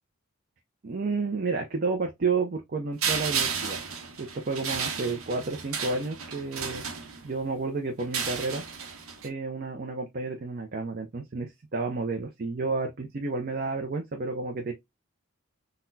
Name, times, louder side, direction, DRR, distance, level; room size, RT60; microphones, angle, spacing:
voice 1, 0.8-3.8 4.2-6.8 7.2-8.6 9.2-14.7, right 3 dB, 45° right, 0.5 m, -31 dB
sound 1, 3.0-7.5 8.0-9.3, right 6 dB, 80° right, 0.8 m, -33 dB
3.9 x 2.1 x 2.6 m
head